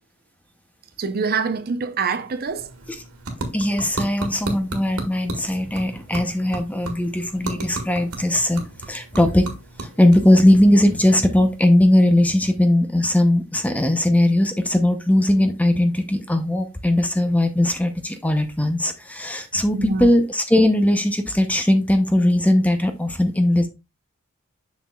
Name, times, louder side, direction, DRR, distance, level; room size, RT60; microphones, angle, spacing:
voice 1, 1.0-2.7 7.5-7.7 19.7-20.1, right 4 dB, 45° right, 0.6 m, -25 dB
sound 1, 2.3-11.7, right 2 dB, 70° right, 1.6 m, -35 dB
voice 2, 3.5-9.5 9.8-23.7, left 1 dB, 5° left, 0.7 m, -19 dB
7.1 x 6.3 x 2.3 m
head